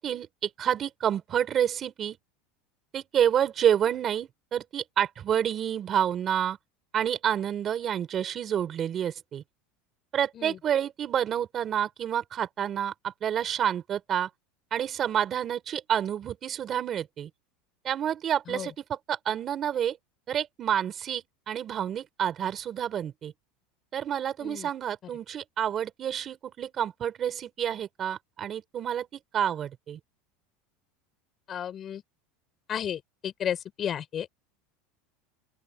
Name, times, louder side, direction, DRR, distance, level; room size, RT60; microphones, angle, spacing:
voice 1, 0.0-2.2 2.9-6.6 6.9-9.4 10.1-14.3 14.7-17.3 17.8-20.0 20.3-23.3 23.9-30.0, right 9 dB, 25° right, 5.5 m, -29 dB
voice 2, 31.5-32.0 32.7-34.3, left 9 dB, 25° left, 5.3 m, -33 dB
open air
supercardioid pair, 180°, 0 cm